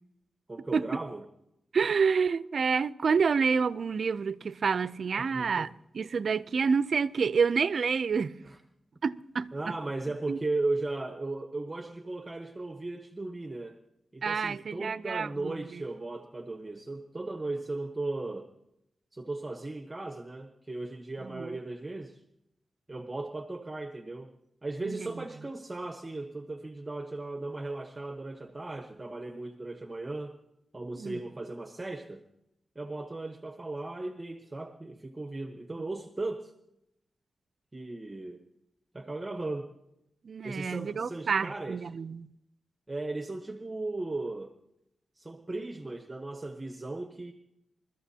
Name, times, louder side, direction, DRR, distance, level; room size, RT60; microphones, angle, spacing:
voice 1, 0.5-1.2 5.2-5.7 8.4-8.6 9.5-13.8 14.1-18.5 19.1-22.2 22.9-24.3 24.6-30.4 30.7-32.2 32.7-36.5 37.7-38.4 38.9-39.7 40.4-41.9 42.9-44.5 45.1-47.3, right 2 dB, 20° right, 1.0 m, -36 dB
voice 2, 1.7-8.4 9.0-9.5 10.3-10.4 14.2-15.8 21.2-21.6 24.8-25.1 31.0-31.2 40.2-42.3, right 5 dB, 65° right, 0.5 m, -28 dB
27.5 x 13.5 x 2.8 m
cardioid pair, 80°, 0 cm